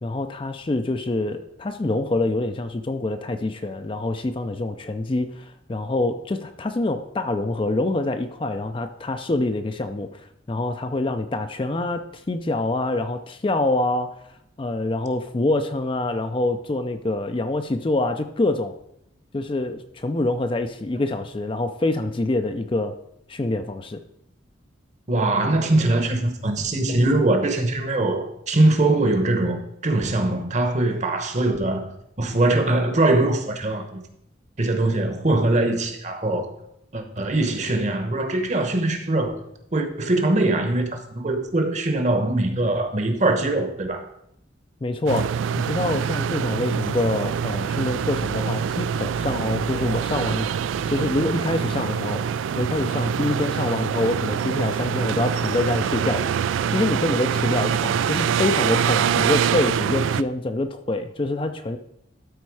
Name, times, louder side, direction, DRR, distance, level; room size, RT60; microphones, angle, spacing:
voice 1, 0.0-14.1 14.6-18.7 19.3-23.0 23.3-24.0 44.8-45.3 45.6-50.5 50.9-61.8, left 2 dB, 25° left, 8 dB, 0.4 m, -26 dB
voice 2, 25.1-31.9 32.2-34.0 34.6-36.5 36.9-39.4 39.7-44.0, right 2 dB, 35° right, 6 dB, 1.0 m, -22 dB
sound 1, 45.1-60.2, right 7 dB, 85° right, 0.3 m, -25 dB
12.5 x 4.3 x 4.7 m, 0.77 s
head